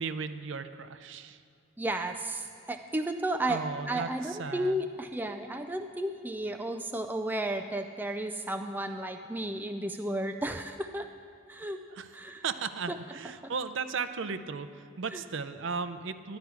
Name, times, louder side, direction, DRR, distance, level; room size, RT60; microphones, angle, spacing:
voice 1, 0.0-1.4 3.5-4.8 12.0-12.1 12.4-16.4, right 5 dB, 65° right, 11 dB, 0.5 m, -36 dB
voice 2, 1.8-11.1 11.5-11.8 12.1-12.4 12.9-13.0 13.4-13.5 15.1-15.2, right 1 dB, 10° right, 6 dB, 0.3 m, -33 dB
11.5 x 11.5 x 4.7 m, 2.5 s
head